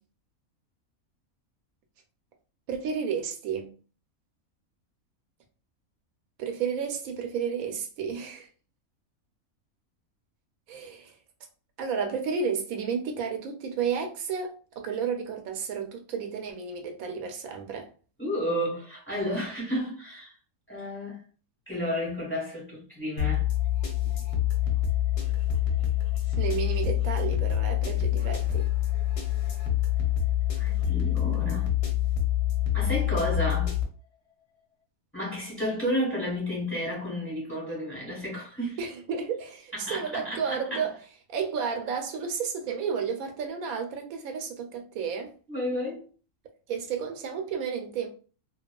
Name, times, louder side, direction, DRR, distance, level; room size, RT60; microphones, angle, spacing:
voice 1, 2.7-3.7 6.4-8.5 10.7-11.2 11.8-17.9 26.4-28.7 38.8-40.9 41.3-45.3 46.7-48.1, right 6 dB, 80° right, 1.0 m, -32 dB
voice 2, 18.2-20.3 20.7-21.2 21.7-23.5 30.6-31.7 32.7-33.8 35.1-38.8 39.7-40.9 45.5-46.1, equal, 10° left, 1.1 m, -31 dB
sound 1, 23.2-33.8, left 12 dB, 50° left, 0.8 m, -26 dB
3.0 x 2.3 x 2.2 m
omnidirectional pair, 1.5 m